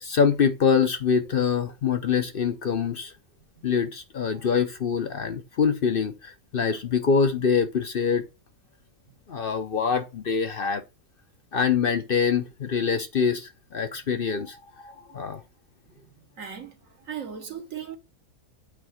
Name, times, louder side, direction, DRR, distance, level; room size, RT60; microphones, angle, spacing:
voice 1, 0.0-3.1 3.6-8.2 9.3-10.8 11.5-15.4, left 6 dB, 50° left, 0.7 m, -25 dB
voice 2, 16.4-16.7 17.1-18.0, right 8 dB, 60° right, 1.3 m, -36 dB
8.5 x 3.2 x 6.2 m
omnidirectional pair, 1.6 m